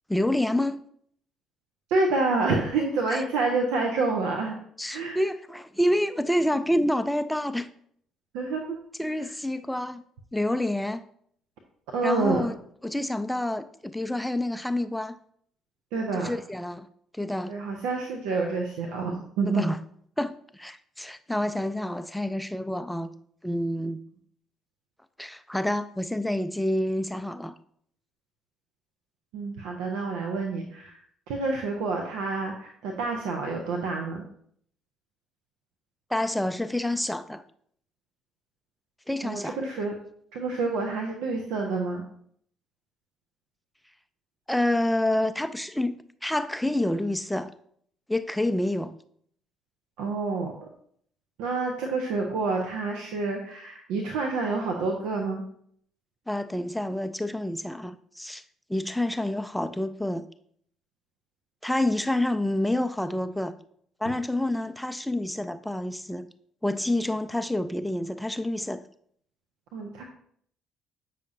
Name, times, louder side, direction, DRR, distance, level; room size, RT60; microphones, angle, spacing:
voice 1, 0.1-0.8 3.1-3.2 4.8-7.7 9.0-10.0 10.3-11.1 12.0-12.5 12.8-15.2 16.1-16.9 17.1-17.5 19.5-19.8 20.2-23.1 23.4-24.0 25.2-27.5 36.1-37.4 39.1-39.6 44.5-47.5 48.1-49.0 56.3-58.4 58.7-60.3 61.6-63.6 64.0-66.3 66.6-68.8, left 1 dB, 5° left, 0.4 m, -28 dB
voice 2, 1.9-4.6 4.9-5.2 8.3-8.8 9.2-9.3 11.9-12.4 15.9-16.3 17.5-19.7 29.3-31.0 31.3-34.2 39.2-40.0 40.3-42.0 50.0-50.7 51.4-55.4 69.7-70.0, right 3 dB, 70° right, 0.7 m, -28 dB
8.3 x 5.8 x 2.6 m
hypercardioid pair, 50°, 0 cm